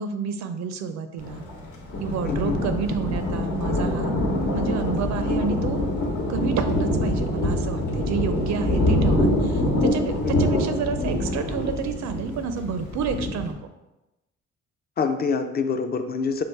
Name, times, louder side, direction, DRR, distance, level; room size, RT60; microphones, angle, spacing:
voice 1, 0.0-1.4 2.0-4.1 4.5-5.8 6.3-13.5, right 6 dB, 65° right, 9 dB, 0.4 m, -29 dB
Thunder, 1.2-13.5, left 1 dB, 70° left, 1.1 m, -25 dB
voice 2, 2.3-2.6 10.2-10.6 15.0-16.4, left 5 dB, 30° left, 8 dB, 0.4 m, -26 dB
4.7 x 2.4 x 4.4 m, 1.0 s
cardioid pair, 90°, 30 cm